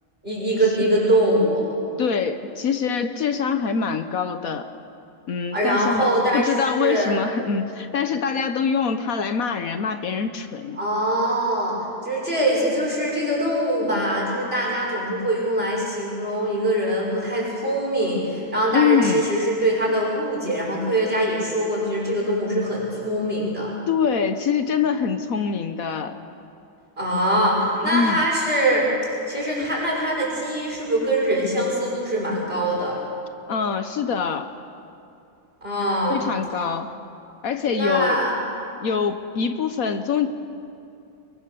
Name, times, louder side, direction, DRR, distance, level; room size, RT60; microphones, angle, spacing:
voice 1, 0.2-1.7 5.5-7.2 10.8-11.8 12.0-23.7 27.0-28.9 29.3-33.0 35.6-36.2 37.7-38.3, right 1 dB, 40° right, -4 dB, 6.5 m, -23 dB
voice 2, 2.0-4.7 5.3-10.8 18.7-19.2 23.9-26.1 27.8-28.3 33.5-34.5 36.1-36.9 37.4-38.2 38.8-40.3, left 6 dB, 70° left, 9 dB, 1.4 m, -24 dB
29.0 x 22.0 x 6.9 m, 2.6 s
omnidirectional pair, 1.6 m